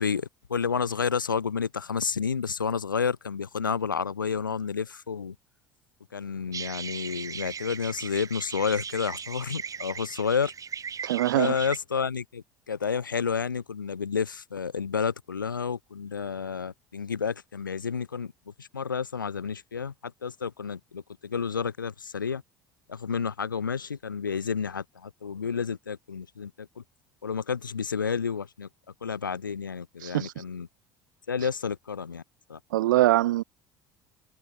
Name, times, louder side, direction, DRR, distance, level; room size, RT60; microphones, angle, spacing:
voice 1, 0.0-5.4 6.1-10.5 11.3-18.3 18.6-22.4 22.9-26.8 27.2-28.7 29.0-30.7 31.3-32.2 32.5-32.6, left 6 dB, 85° left, 5.4 m, -30 dB
sound 1, 6.5-11.8, right 6 dB, 30° right, 5.0 m, -38 dB
voice 2, 11.0-11.5 30.0-30.3 32.7-33.4, right 16 dB, 75° right, 1.5 m, -23 dB
figure-of-eight pair, 65°, 11 cm